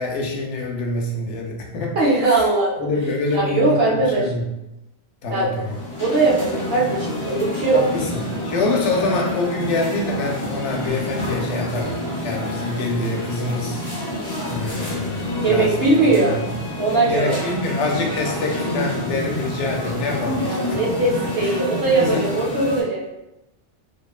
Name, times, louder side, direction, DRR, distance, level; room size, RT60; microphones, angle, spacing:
voice 1, 0.0-2.0 2.3-2.4 2.8-4.5 5.2-5.8 7.7-13.8 14.4-16.4 17.0-21.5 22.0-22.3, left 2 dB, 80° left, 0 dB, 0.9 m, -26 dB
voice 2, 1.9-2.9 3.3-4.2 5.3-5.5 6.0-7.8 15.4-16.3 16.8-17.4 20.5-23.0, right 3 dB, 60° right, -5 dB, 0.9 m, -20 dB
sound 1, 5.4-22.8, left 1 dB, 25° left, 0.6 m, -28 dB
2.8 x 2.1 x 2.3 m, 0.92 s
omnidirectional pair, 1.2 m